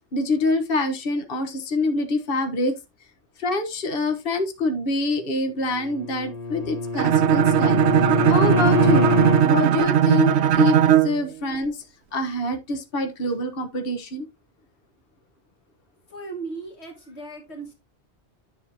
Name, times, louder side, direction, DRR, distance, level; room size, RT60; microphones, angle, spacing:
voice 1, 0.0-2.8 3.4-9.1 9.4-14.3, left 2 dB, 55° left, 1.4 m, -26 dB
Bowed string instrument, 5.7-9.5, left 2 dB, 35° left, 1.2 m, -24 dB
Bowed string instrument 2, 7.0-11.2, right 9 dB, 80° right, 0.9 m, -18 dB
voice 2, 16.1-17.7, right 3 dB, 75° left, 2.5 m, -37 dB
10.5 x 6.4 x 2.8 m
omnidirectional pair, 1.1 m